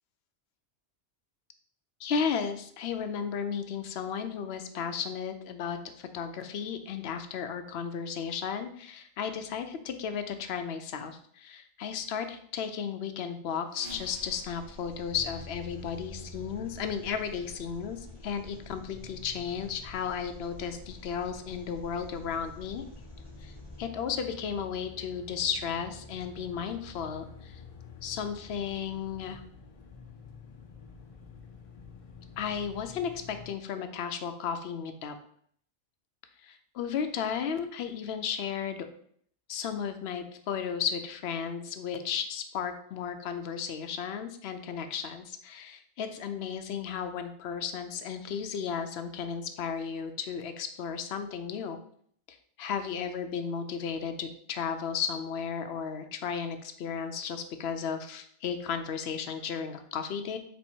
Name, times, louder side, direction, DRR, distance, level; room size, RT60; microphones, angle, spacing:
voice 1, 2.0-22.8 23.4-23.5 23.8-27.6 28.0-29.4 32.4-35.2 36.4-38.9 39.5-51.8 52.3-60.4, left 7 dB, 70° left, 8 dB, 0.8 m, -34 dB
sound 1, 13.6-16.3, left 1 dB, 80° right, 1.5 m, -52 dB
Engine, 13.8-23.8, equal, 60° right, 1.1 m, -50 dB
sound 2, 15.1-33.5, left 4 dB, 50° left, 0.4 m, -49 dB
4.3 x 2.7 x 4.3 m, 0.63 s
omnidirectional pair, 1.1 m